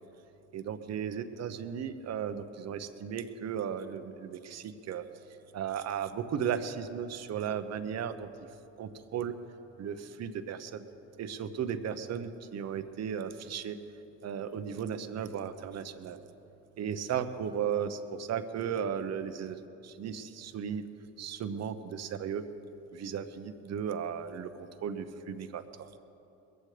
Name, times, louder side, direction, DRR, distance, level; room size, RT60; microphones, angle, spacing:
voice 1, 0.5-5.0 5.5-8.3 8.8-9.3 9.8-10.9 11.2-13.7 14.2-16.2 16.8-20.8 21.2-22.4 22.9-26.0, right 8 dB, 55° right, 10 dB, 1.0 m, -35 dB
21.0 x 14.5 x 3.4 m, 3.0 s
cardioid pair, 90°, 32 cm